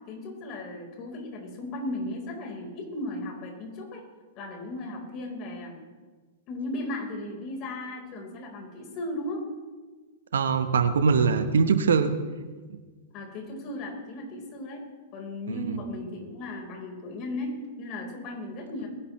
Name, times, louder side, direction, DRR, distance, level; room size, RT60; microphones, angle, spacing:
voice 1, 0.0-4.0 4.3-5.8 6.5-9.5 13.1-14.8 15.1-18.9, left 1 dB, 40° left, 1 dB, 4.5 m, -36 dB
voice 2, 10.3-12.1 15.5-15.8, right 5 dB, 80° right, 9 dB, 1.1 m, -22 dB
21.5 x 11.0 x 3.3 m, 1.4 s
hypercardioid pair, 110°, 0 cm